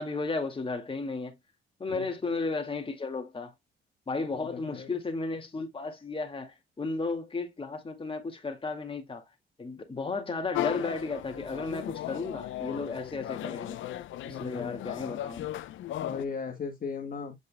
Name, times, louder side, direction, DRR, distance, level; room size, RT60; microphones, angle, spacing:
voice 1, 0.0-1.4 1.8-3.5 4.1-9.2 9.6-13.8 14.2-15.5, left 3 dB, 25° left, 2.2 m, -34 dB
voice 2, 4.4-4.9 14.3-14.8 16.0-17.3, left 5 dB, 45° left, 1.7 m, -37 dB
sound 1, 10.5-16.2, left 13 dB, 75° left, 0.7 m, -36 dB
8.4 x 5.3 x 2.2 m
cardioid pair, 90°, 20 cm